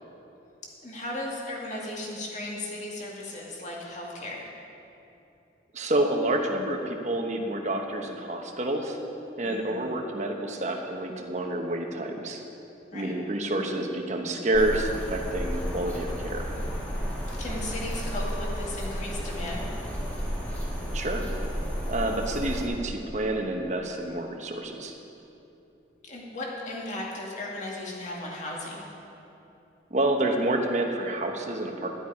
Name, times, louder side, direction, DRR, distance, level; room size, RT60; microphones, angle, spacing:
voice 1, 0.8-4.4 9.4-9.9 12.9-13.1 17.4-19.7 26.0-28.9, left 1 dB, 40° left, -3 dB, 2.0 m, -36 dB
voice 2, 5.7-9.0 9.4-12.4 12.9-16.5 20.9-21.3 21.9-25.0 29.9-32.0, right 1 dB, 40° right, 3 dB, 1.1 m, -28 dB
sound 1, 14.5-22.7, equal, 10° left, 1.9 m, -32 dB
12.5 x 11.5 x 5.0 m, 2.9 s
head